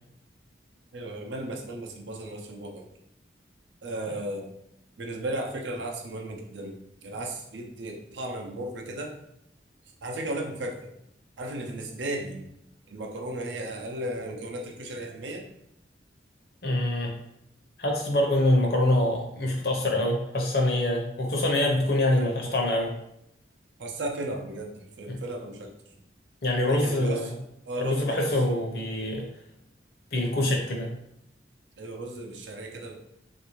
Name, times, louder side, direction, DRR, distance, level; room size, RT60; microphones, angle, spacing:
voice 1, 0.9-2.9 3.8-4.5 5.0-9.2 10.0-10.9 11.4-12.4 12.9-15.5 22.0-22.6 23.8-25.9 26.7-27.4 27.7-28.9 31.8-33.0, right 1 dB, 80° right, 2 dB, 0.6 m, -35 dB
voice 2, 16.6-17.1 17.8-22.9 25.1-25.2 26.4-27.3 27.8-29.2 30.1-30.9, left 1 dB, 55° left, 1 dB, 0.7 m, -25 dB
3.4 x 2.6 x 3.0 m, 0.80 s
head